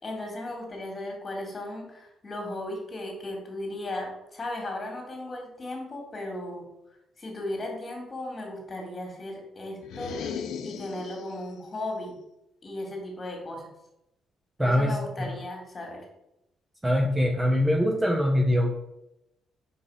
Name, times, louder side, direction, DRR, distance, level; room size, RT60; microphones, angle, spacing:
voice 1, 0.0-6.7 7.2-10.2 10.6-12.2 12.6-13.7 14.6-16.0, left 1 dB, 30° left, 1 dB, 2.3 m, -36 dB
sound 1, 9.8-11.5, left 7 dB, 80° left, 0.7 m, -36 dB
voice 2, 14.6-15.3 16.8-18.7, equal, 15° right, 2 dB, 0.7 m, -23 dB
4.9 x 4.8 x 4.9 m, 0.86 s
cardioid pair, 90°, 0 cm